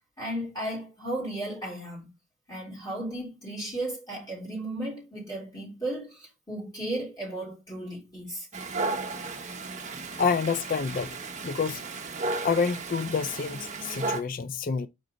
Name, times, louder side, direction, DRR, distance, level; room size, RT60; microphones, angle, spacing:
voice 1, 0.2-2.1 2.5-8.5, right 1 dB, 20° left, 3.2 m, -35 dB
Dog, 8.5-14.2, right 3 dB, 35° right, 0.7 m, -34 dB
voice 2, 10.2-11.1 11.4-11.8 12.4-14.9, left 5 dB, 40° left, 0.4 m, -28 dB
4.7 x 3.9 x 5.1 m
head